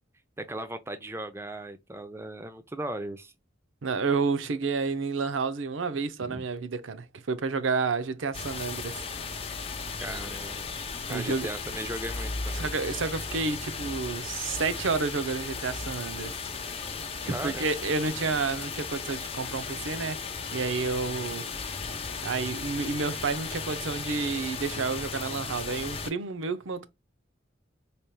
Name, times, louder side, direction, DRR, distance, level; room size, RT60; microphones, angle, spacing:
voice 1, 0.4-3.3 6.2-6.5 10.0-10.7 11.1-12.7 17.3-17.7, right 1 dB, 15° right, 0.5 m, -37 dB
voice 2, 3.8-9.0 11.1-11.5 12.5-16.4 17.2-20.2 20.5-21.5 22.2-26.9, right 4 dB, 90° right, 0.6 m, -30 dB
sound 1, 8.3-26.1, left 4 dB, 30° left, 0.7 m, -36 dB
4.2 x 3.4 x 2.2 m
head